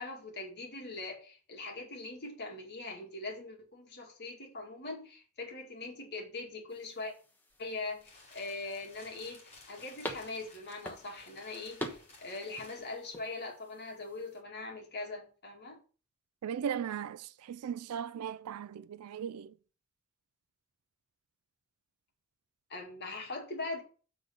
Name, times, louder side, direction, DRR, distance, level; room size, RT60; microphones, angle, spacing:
voice 1, 0.0-7.1 7.6-15.8 22.7-23.8, left 3 dB, 50° left, 2.1 m, -41 dB
sound 1, 6.7-14.4, equal, 10° left, 1.1 m, -47 dB
sound 2, 7.5-13.2, left 3 dB, 30° left, 2.7 m, -57 dB
voice 2, 16.4-19.5, right 8 dB, 80° right, 0.3 m, -37 dB
7.4 x 3.9 x 6.4 m
head